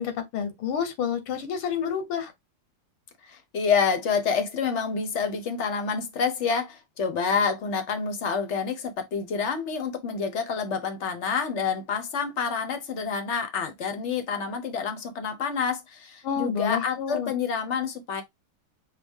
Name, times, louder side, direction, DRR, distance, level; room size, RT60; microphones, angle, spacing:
voice 1, 0.0-2.3 16.2-17.3, left 7 dB, 85° left, 1.8 m, -29 dB
voice 2, 3.3-18.2, left 6 dB, 50° left, 0.8 m, -28 dB
5.7 x 2.3 x 3.6 m
omnidirectional pair, 2.3 m